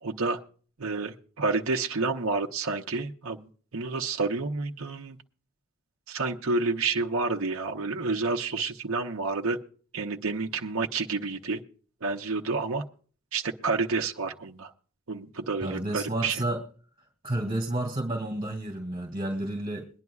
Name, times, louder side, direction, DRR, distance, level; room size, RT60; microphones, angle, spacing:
voice 1, 0.0-0.4 0.8-5.2 6.1-9.6 9.9-11.6 12.0-12.8 13.3-14.7 15.1-16.4, right 3 dB, 75° right, 3 dB, 0.8 m, -29 dB
voice 2, 15.6-16.6 17.2-19.9, right 1 dB, 25° right, 2 dB, 2.3 m, -30 dB
22.5 x 10.5 x 2.3 m, 0.42 s
head